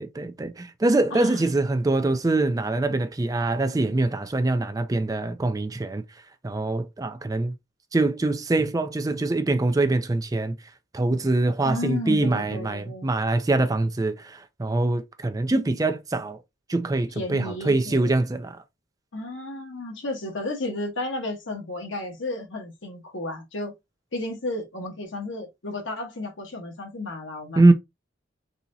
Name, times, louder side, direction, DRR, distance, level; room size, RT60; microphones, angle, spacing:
voice 1, 0.0-6.0 6.4-7.5 7.9-10.6 10.9-16.4 16.7-18.6 27.6-27.7, right 2 dB, 20° right, 0.4 m, -24 dB
voice 2, 1.1-1.4 11.6-13.1 17.2-18.2 19.1-23.7 24.1-27.6, left 2 dB, 85° left, 1.2 m, -33 dB
4.1 x 2.9 x 2.6 m
head